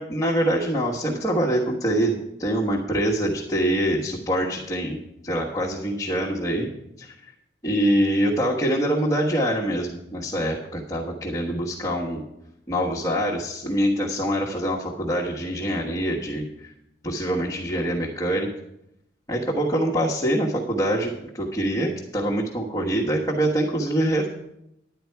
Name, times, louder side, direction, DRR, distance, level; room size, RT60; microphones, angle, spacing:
voice 1, 0.0-6.7 7.0-7.3 7.6-12.2 12.7-16.7 17.0-18.5 19.3-24.3, right 1 dB, 20° left, -4 dB, 1.3 m, -25 dB
10.5 x 9.9 x 4.6 m, 0.81 s
head